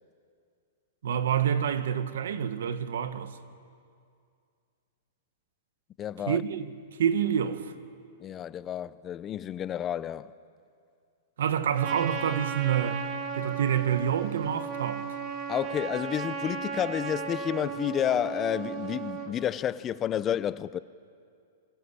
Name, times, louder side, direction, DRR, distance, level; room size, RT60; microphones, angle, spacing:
voice 1, 1.0-3.4 6.3-6.7 7.0-7.7 11.4-13.0 13.3-15.0, right 8 dB, 80° right, 1.7 m, -27 dB
voice 2, 6.0-6.4 8.2-10.3 15.5-20.8, left 10 dB, 20° left, 0.6 m, -30 dB
Trumpet, 11.8-19.3, right 6 dB, 30° right, 2.4 m, -35 dB
28.0 x 23.5 x 8.5 m
hypercardioid pair, 155°, 0 cm